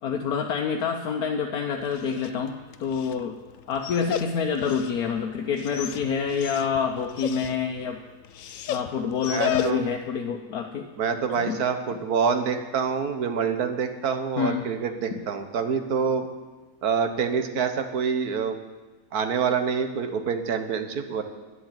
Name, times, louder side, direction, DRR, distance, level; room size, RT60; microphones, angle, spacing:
voice 1, 0.0-3.4 3.7-8.0 8.7-10.9 11.1-11.6 14.4-14.7, left 6 dB, 85° left, 2 dB, 1.4 m, -27 dB
Dog, 1.8-10.1, left 10 dB, 65° left, 1.0 m, -35 dB
voice 2, 9.3-9.8 11.0-16.3 16.8-18.6 19.1-21.2, right 6 dB, 85° right, 8 dB, 1.7 m, -26 dB
11.5 x 9.7 x 9.0 m, 1.2 s
omnidirectional pair, 1.6 m